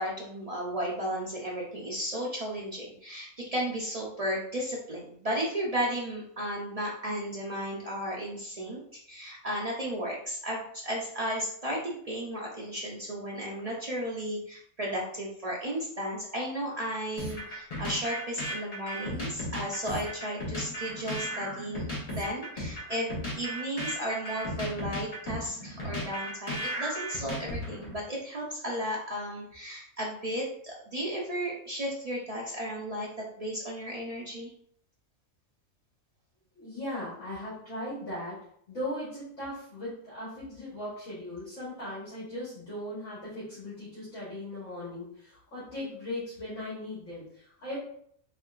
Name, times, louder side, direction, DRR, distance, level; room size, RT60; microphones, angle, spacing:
voice 1, 0.0-33.1 33.4-34.5, equal, 75° right, -4 dB, 0.3 m, -34 dB
sound 1, 17.2-28.0, equal, 30° left, 0.9 m, -35 dB
voice 2, 36.6-47.8, left 1 dB, 60° left, -9 dB, 1.7 m, -38 dB
3.6 x 3.4 x 2.4 m, 0.64 s
omnidirectional pair, 1.5 m